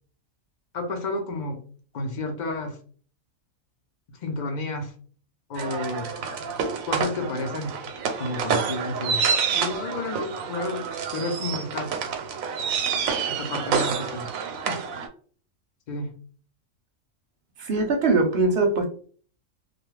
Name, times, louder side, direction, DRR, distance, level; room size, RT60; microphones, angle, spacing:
voice 1, 0.7-1.6 1.9-2.8 4.1-4.9 5.5-6.1 6.9-7.8 8.2-9.2 9.5-10.8 11.1-12.0 13.3-14.3 14.7-14.8 15.9-16.2, left 2 dB, 45° left, 0.6 m, -31 dB
sound 1, 5.6-15.1, right 6 dB, 90° right, 1.0 m, -28 dB
voice 2, 17.6-18.9, right 3 dB, 60° right, 0.8 m, -21 dB
2.4 x 2.2 x 3.1 m
omnidirectional pair, 1.4 m